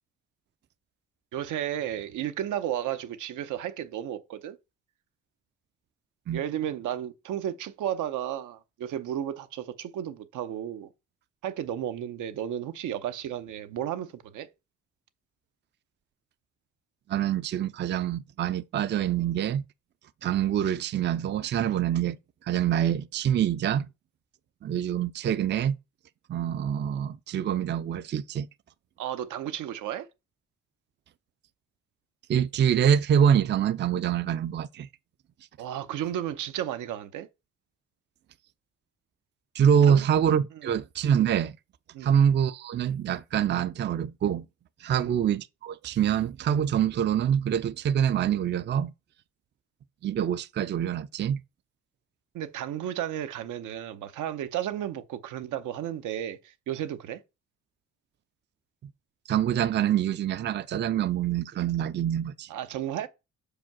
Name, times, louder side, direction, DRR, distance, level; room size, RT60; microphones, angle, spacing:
voice 1, 1.3-4.6 6.3-10.9 11.4-14.5 29.0-30.1 35.6-37.3 39.9-40.1 40.6-40.7 41.9-42.1 44.9-45.1 52.3-57.2 62.5-63.1, right 11 dB, 85° right, 0.8 m, -33 dB
voice 2, 17.1-19.6 20.2-22.2 22.4-23.9 24.6-25.8 26.3-28.5 32.3-34.9 39.5-41.6 42.0-44.5 44.8-48.9 50.0-51.4 59.3-62.5, right 9 dB, 35° right, 0.4 m, -25 dB
5.4 x 5.0 x 5.9 m
cardioid pair, 90°, 30 cm